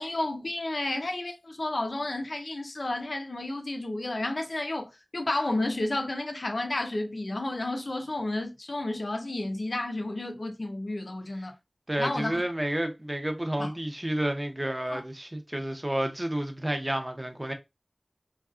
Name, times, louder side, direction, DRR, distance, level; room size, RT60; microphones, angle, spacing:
voice 1, 0.0-11.5 12.0-12.4 13.6-13.7 14.9-15.0, left 2 dB, 75° left, 0.5 m, -31 dB
voice 2, 11.9-17.5, right 1 dB, 30° right, 0.6 m, -30 dB
2.5 x 2.3 x 2.3 m
wide cardioid pair, 40°, 0 cm